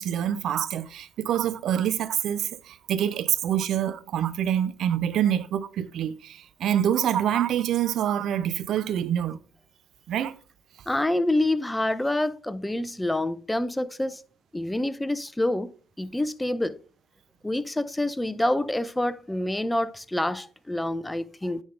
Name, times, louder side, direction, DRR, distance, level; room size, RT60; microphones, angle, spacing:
voice 1, 0.0-9.4 10.1-10.3, right 10 dB, 65° right, 0.5 m, -26 dB
voice 2, 10.9-14.2 14.5-15.7 16.0-16.7 17.4-21.6, left 1 dB, 10° left, 0.6 m, -27 dB
9.5 x 3.6 x 3.8 m
supercardioid pair, 65°, 0 cm